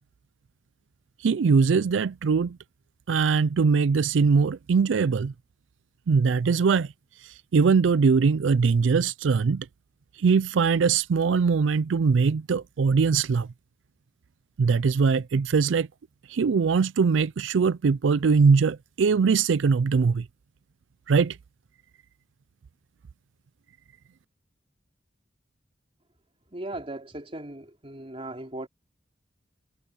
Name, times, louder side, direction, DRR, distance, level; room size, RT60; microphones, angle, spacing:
voice 1, 1.2-2.6 3.1-5.3 6.1-6.9 7.2-9.7 10.2-13.5 14.6-15.9 16.3-20.3 21.1-21.4, right 5 dB, 90° right, 0.4 m, -22 dB
voice 2, 26.5-28.7, right 1 dB, 30° right, 3.8 m, -37 dB
head